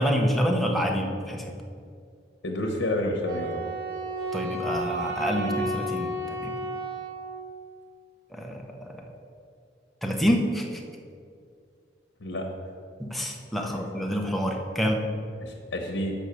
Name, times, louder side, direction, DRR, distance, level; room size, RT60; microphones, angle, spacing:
voice 1, 0.0-1.5 4.3-6.1 6.4-6.5 8.3-9.1 10.0-10.8 13.0-15.0, equal, ahead, 1 dB, 0.7 m, -27 dB
voice 2, 2.4-3.7 12.2-12.5 15.4-16.1, left 1 dB, 85° left, 1 dB, 0.9 m, -29 dB
Wind instrument woodwind instrument, 3.3-7.5, right 1 dB, 75° right, 1.0 m, -32 dB
6.2 x 5.3 x 6.7 m, 2.3 s
head